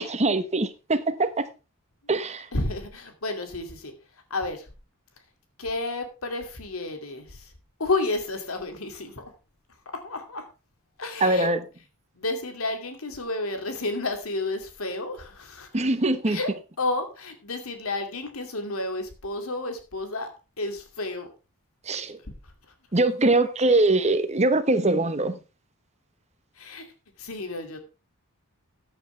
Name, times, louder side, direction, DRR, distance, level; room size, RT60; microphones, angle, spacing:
voice 1, 0.0-1.5 2.1-2.5 11.2-11.6 15.7-16.4 21.9-22.2 22.9-25.4, right 2 dB, 30° right, 1.1 m, -22 dB
voice 2, 2.5-3.9 4.3-4.7 5.6-7.5 7.8-9.2 9.9-10.5 11.0-11.5 12.2-15.7 16.3-16.5 16.8-20.3 20.6-21.3 26.6-26.9 27.2-27.8, left 2 dB, 75° left, 2.5 m, -31 dB
14.5 x 9.3 x 3.4 m
head